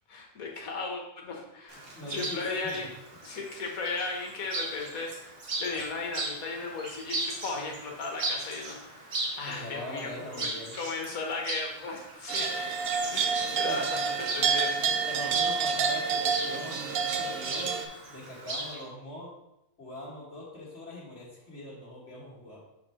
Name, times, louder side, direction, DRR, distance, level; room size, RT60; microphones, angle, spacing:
voice 1, 0.1-2.9 3.2-12.5 13.1-14.7, left 3 dB, 70° left, 1 dB, 1.6 m, -36 dB
Chirp tweet, 1.7-18.8, right 2 dB, 45° right, 1.2 m, -38 dB
voice 2, 1.9-2.9 9.5-10.8 13.6-13.9 15.0-19.3 19.8-22.6, left 1 dB, 50° left, -9 dB, 1.8 m, -42 dB
sound 1, 12.3-17.9, right 6 dB, 65° right, 0.6 m, -28 dB
6.3 x 4.3 x 4.3 m, 0.87 s
omnidirectional pair, 1.6 m